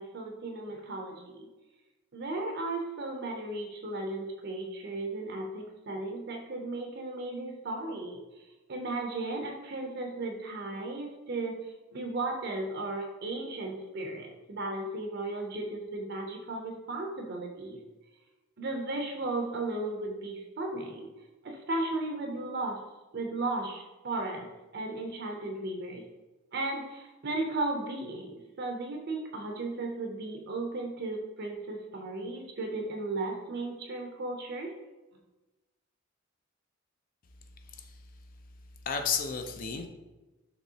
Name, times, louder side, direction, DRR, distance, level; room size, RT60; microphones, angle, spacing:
voice 1, 0.0-1.5 2.1-8.2 8.7-11.7 11.9-17.8 18.6-21.1 21.4-22.8 23.1-26.0 26.5-34.7, right 2 dB, 50° right, 2 dB, 0.5 m, -35 dB
voice 2, 37.7-38.0 38.9-39.9, left 6 dB, 40° left, 6 dB, 0.4 m, -32 dB
6.0 x 3.1 x 2.8 m, 1.1 s
head